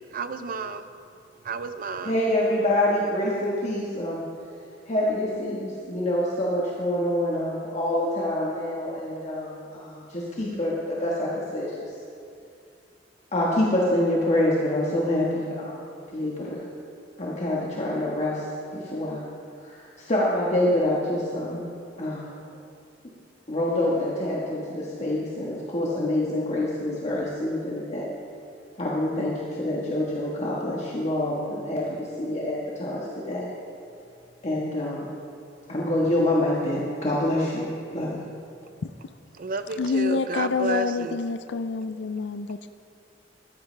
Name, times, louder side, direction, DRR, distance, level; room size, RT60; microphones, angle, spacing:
voice 1, 0.1-0.8 1.4-2.2 39.3-41.2, right 3 dB, 50° right, 10 dB, 0.6 m, -31 dB
voice 2, 2.0-4.2 4.9-11.9 13.3-16.6 17.2-18.5 18.7-19.2 19.6-21.7 22.0-22.3 23.5-28.1 28.8-33.5 34.4-35.1 35.7-37.7 37.9-38.2, left 1 dB, 40° left, -5 dB, 1.4 m, -26 dB
voice 3, 39.8-42.7, left 4 dB, 65° left, 10 dB, 0.4 m, -27 dB
14.0 x 13.5 x 3.3 m, 2.4 s
head